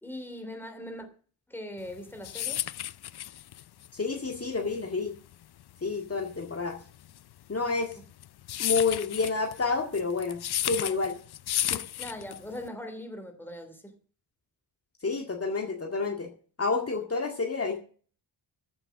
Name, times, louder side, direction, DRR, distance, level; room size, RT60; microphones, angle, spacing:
voice 1, 0.0-1.1 1.5-2.6 12.0-13.9, left 1 dB, 5° left, 2.8 m, -40 dB
sound 1, 1.9-12.7, left 12 dB, 60° left, 0.6 m, -33 dB
voice 2, 3.9-5.1 5.8-6.8 7.5-7.9 8.6-11.2 11.7-11.8 15.0-16.3 16.6-17.8, left 4 dB, 35° left, 2.0 m, -29 dB
14.5 x 7.0 x 7.4 m
wide cardioid pair, 125°, 43 cm